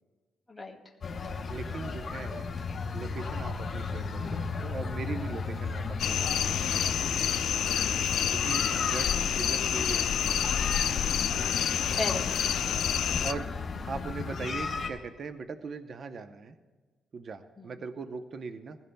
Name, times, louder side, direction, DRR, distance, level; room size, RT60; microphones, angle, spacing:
sound 1, 1.0-14.9, left 4 dB, 40° left, 3.4 m, -35 dB
voice 1, 1.5-2.5 2.9-6.7 8.3-8.6 8.9-10.3 13.2-13.5 13.9-16.6 17.1-18.8, right 4 dB, 50° right, 8 dB, 0.8 m, -39 dB
sound 2, 6.0-13.3, left 9 dB, 70° left, 0.6 m, -28 dB
voice 2, 7.7-8.2 11.3-11.7 12.0-12.6 13.2-13.3 17.6-17.7, left 2 dB, 10° left, -1 dB, 2.4 m, -38 dB
21.0 x 16.5 x 2.3 m, 1.3 s
cardioid pair, 90°, 0 cm